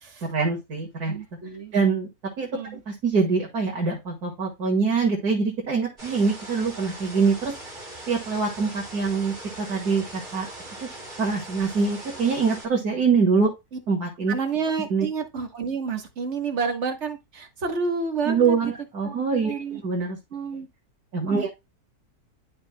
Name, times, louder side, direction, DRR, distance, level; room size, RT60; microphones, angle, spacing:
voice 1, 0.3-1.2 1.7-2.1 2.4-2.5 2.9-7.5 8.1-10.5 10.8-10.9 11.2-13.5 13.9-14.4 14.9-15.1 18.2-20.2 21.1-21.5, right 5 dB, 75° right, 2.5 m, -24 dB
voice 2, 1.1-1.7 2.5-2.8 14.3-18.7 19.0-19.8 20.3-20.7 21.3-21.5, right 5 dB, 50° right, 1.6 m, -30 dB
sound 1, 6.0-12.7, right 1 dB, 30° right, 2.8 m, -40 dB
11.5 x 5.5 x 2.2 m
omnidirectional pair, 1.6 m